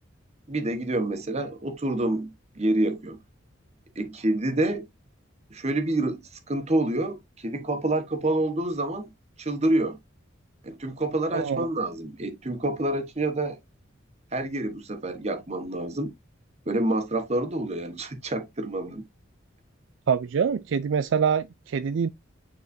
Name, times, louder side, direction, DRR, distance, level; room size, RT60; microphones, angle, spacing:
voice 1, 0.5-3.2 3.9-4.9 5.5-6.2 6.5-9.1 9.4-10.0 10.6-13.6 14.3-16.1 16.7-19.0, right 1 dB, 35° right, 1.2 m, -27 dB
voice 2, 11.3-11.7 20.1-22.1, right 6 dB, 65° right, 0.4 m, -25 dB
9.4 x 4.0 x 2.6 m
head